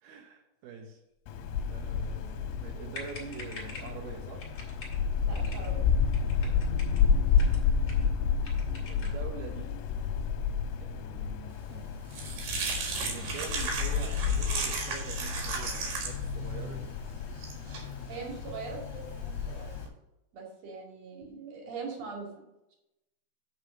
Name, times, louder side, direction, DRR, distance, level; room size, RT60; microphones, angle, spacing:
voice 1, 0.0-1.0 1.7-4.5 7.1-8.4 8.9-9.7 10.8-11.9 13.0-16.9, right 5 dB, 90° right, 1 dB, 2.1 m, -45 dB
Wind, 1.3-19.9, left 6 dB, 85° left, 3.1 m, -31 dB
sound 1, 2.9-4.0 4.4-5.0 5.3-5.7 6.1-7.0 7.3-8.1 8.4-9.2, left 2 dB, 45° left, 1.2 m, -46 dB
voice 2, 5.2-5.8 7.4-7.5 18.1-19.8 20.3-22.3, right 5 dB, 45° right, -1 dB, 2.5 m, -41 dB
sound 2, 11.6-19.9, right 4 dB, 60° right, 3.1 m, -36 dB
8.7 x 5.2 x 6.4 m, 0.89 s
omnidirectional pair, 6.0 m